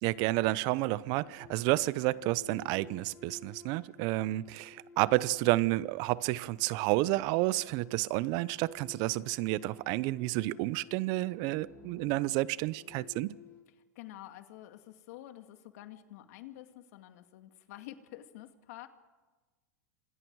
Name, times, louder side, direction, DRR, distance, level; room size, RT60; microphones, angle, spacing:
voice 1, 0.0-13.3, right 18 dB, 45° right, 0.7 m, -30 dB
sound 1, 1.1-13.6, left 3 dB, 30° left, 3.7 m, -54 dB
voice 2, 13.7-18.9, left 14 dB, 65° left, 2.2 m, -49 dB
27.5 x 26.5 x 4.8 m
supercardioid pair, 135°, 9 cm